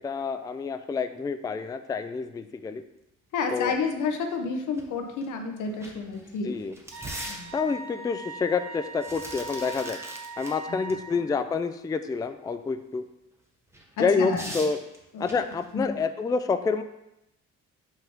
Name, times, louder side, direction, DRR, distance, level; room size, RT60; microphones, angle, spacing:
voice 1, 0.0-2.8 3.5-3.7 6.4-6.7 7.5-10.0 10.4-13.0 14.0-14.8 15.2-16.8, left 5 dB, 15° left, 10 dB, 0.3 m, -28 dB
voice 2, 3.3-6.6 7.3-7.5 10.7-10.8 14.0-14.5 15.1-15.4 15.7-15.9, left 4 dB, 80° left, 4 dB, 1.0 m, -30 dB
sound 1, 4.7-4.8 5.2-5.3 5.7-7.9 8.8-10.6 10.9-11.0 13.7-15.7, right 1 dB, 10° right, 1.1 m, -41 dB
Wind instrument woodwind instrument, 6.9-11.2, right 2 dB, 85° right, 1.5 m, -40 dB
5.8 x 3.5 x 5.6 m, 0.85 s
cardioid pair, 90°, 30 cm